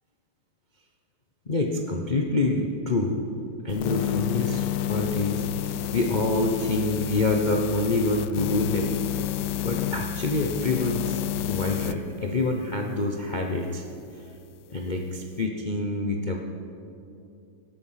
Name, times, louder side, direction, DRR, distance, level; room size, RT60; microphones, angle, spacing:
voice 1, 1.5-3.2 3.6-8.9 9.6-13.8 14.7-16.4, left 2 dB, 70° left, 1 dB, 0.4 m, -26 dB
sound 1, 3.7-12.0, left 12 dB, 90° left, 1.5 m, -30 dB
17.5 x 12.0 x 5.7 m, 2.6 s
omnidirectional pair, 2.3 m